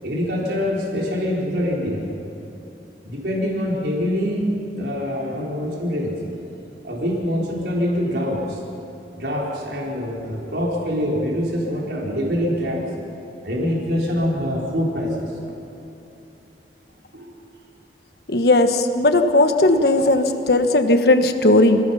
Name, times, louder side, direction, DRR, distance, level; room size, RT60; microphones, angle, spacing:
voice 1, 0.0-2.1 3.0-6.2 6.8-8.6 9.1-12.9 13.4-15.3 17.1-17.3, equal, 70° right, -3 dB, 4.6 m, -24 dB
voice 2, 18.3-21.8, left 2 dB, 60° left, 7 dB, 1.4 m, -16 dB
27.5 x 17.5 x 5.8 m, 3.0 s
head